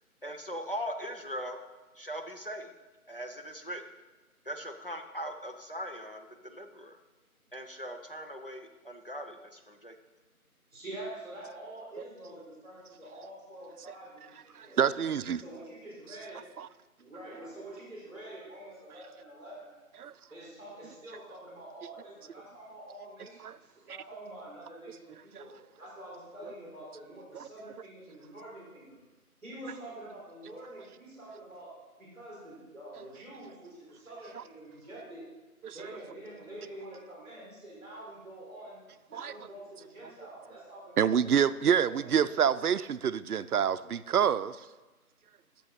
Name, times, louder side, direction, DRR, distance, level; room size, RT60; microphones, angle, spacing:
voice 1, 0.2-1.6 2.0-2.7 3.1-3.8 4.4-7.0 7.5-10.0, equal, 40° left, 4 dB, 0.7 m, -40 dB
voice 2, 10.7-15.1 15.3-16.4 17.0-19.7 20.3-25.5 25.8-29.0 29.4-31.7 32.0-35.2 35.7-38.8 39.1-42.5, right 1 dB, 5° right, -6 dB, 3.3 m, -46 dB
voice 3, 14.6-15.4 16.6-16.7 20.0-20.1 23.4-23.5 27.4-27.5 35.6-35.7 39.1-39.3 41.0-44.6, right 8 dB, 75° right, 15 dB, 0.5 m, -27 dB
11.5 x 6.7 x 3.9 m, 1.2 s
figure-of-eight pair, 175°, 45 cm